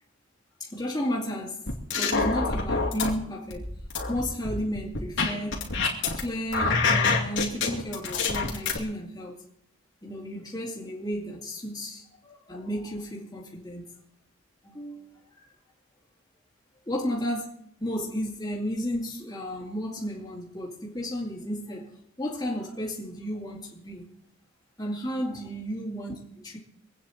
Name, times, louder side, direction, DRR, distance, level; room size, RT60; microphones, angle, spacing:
voice 1, 0.6-3.7 4.1-5.7 6.2-9.4 10.0-14.0 14.6-15.3 16.9-17.4 17.8-21.9 22.2-24.1 24.8-26.6, equal, 20° left, 2.7 m, -33 dB
sound 1, 1.7-3.1 3.5-6.2 6.5-8.8, left 4 dB, 60° left, 3.0 m, -26 dB
26.0 x 9.4 x 4.4 m
head